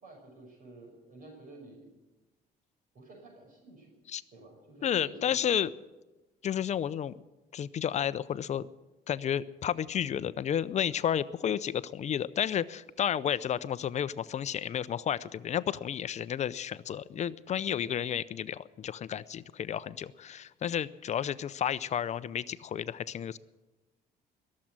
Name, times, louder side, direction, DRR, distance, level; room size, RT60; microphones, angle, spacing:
voice 1, 0.0-1.9 2.9-3.9 4.3-5.4, right 2 dB, 55° right, 0 dB, 5.8 m, -51 dB
voice 2, 4.8-5.7 6.4-7.1 7.5-8.7 9.1-23.4, left 9 dB, 45° left, 16 dB, 0.6 m, -32 dB
21.5 x 7.5 x 8.8 m, 1.1 s
cardioid pair, 110°, 17 cm